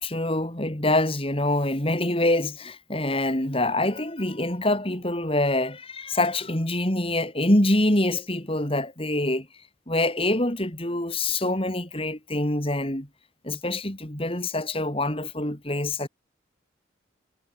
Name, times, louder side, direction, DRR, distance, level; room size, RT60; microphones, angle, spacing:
voice 1, 0.0-9.5 9.9-13.1 13.4-16.1, left 1 dB, 30° left, 3.4 m, -25 dB
head